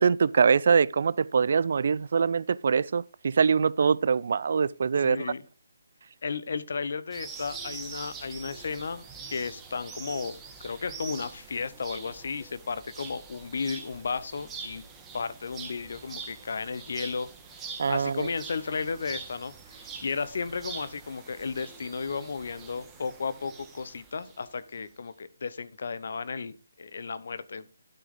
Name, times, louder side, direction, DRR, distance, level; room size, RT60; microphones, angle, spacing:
voice 1, 0.0-5.2 17.8-18.3, right 6 dB, 55° right, 0.3 m, -23 dB
voice 2, 5.0-5.4 6.2-14.8 15.1-17.3 17.9-27.6, left 5 dB, 60° left, 0.9 m, -34 dB
sound 1, 7.1-24.4, right 5 dB, 10° right, 1.7 m, -44 dB
12.0 x 6.2 x 3.7 m
figure-of-eight pair, 150°, 0 cm